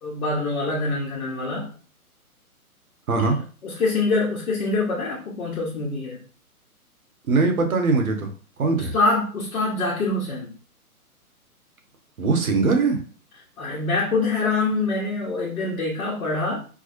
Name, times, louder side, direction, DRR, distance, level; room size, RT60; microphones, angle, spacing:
voice 1, 0.0-1.7 3.6-6.2 8.7-10.5 13.6-16.6, left 3 dB, 65° left, -4 dB, 1.1 m, -25 dB
voice 2, 3.1-3.4 7.3-8.3 8.6-8.9 12.2-13.0, right 3 dB, 65° right, 4 dB, 1.0 m, -21 dB
4.6 x 2.1 x 2.9 m, 0.38 s
figure-of-eight pair, 125°, 45 cm